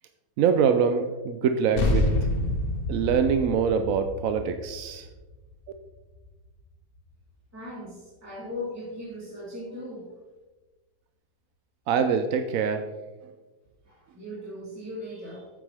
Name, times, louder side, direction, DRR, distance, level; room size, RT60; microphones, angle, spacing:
voice 1, 0.4-2.1 2.9-5.1 11.9-12.9, right 6 dB, 70° right, 8 dB, 0.8 m, -24 dB
sound 1, 1.8-6.5, left 1 dB, 40° left, 0.9 m, -28 dB
voice 2, 7.5-10.1 13.8-15.5, left 1 dB, 10° right, -9 dB, 3.1 m, -38 dB
8.8 x 8.6 x 3.4 m, 1.2 s
omnidirectional pair, 1.9 m